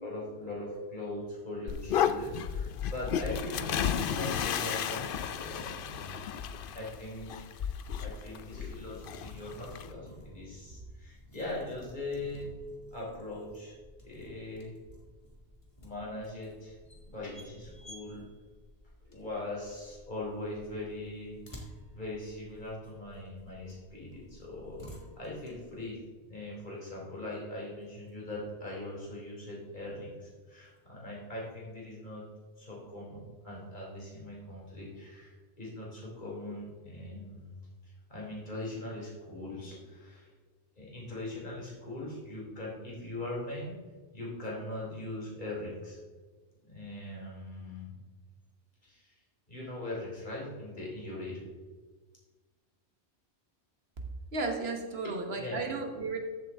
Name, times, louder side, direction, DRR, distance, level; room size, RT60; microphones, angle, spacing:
voice 1, 0.0-6.3 6.7-12.5 12.9-13.8 14.0-14.7 15.8-16.8 17.0-18.3 19.0-24.8 25.2-26.0 26.3-32.2 32.6-37.6 37.8-40.3 40.8-43.8 44.1-46.0 46.7-47.9 48.8-49.2 49.5-51.4 55.0-55.7, left 2 dB, 45° left, -4 dB, 3.6 m, -41 dB
sound 1, 1.7-9.9, left 8 dB, 60° left, 0.7 m, -33 dB
sound 2, 8.5-25.9, equal, 30° left, 1.7 m, -53 dB
voice 2, 54.3-56.2, right 3 dB, 70° right, 4 dB, 1.6 m, -34 dB
13.5 x 7.6 x 3.6 m, 1.4 s
omnidirectional pair, 1.1 m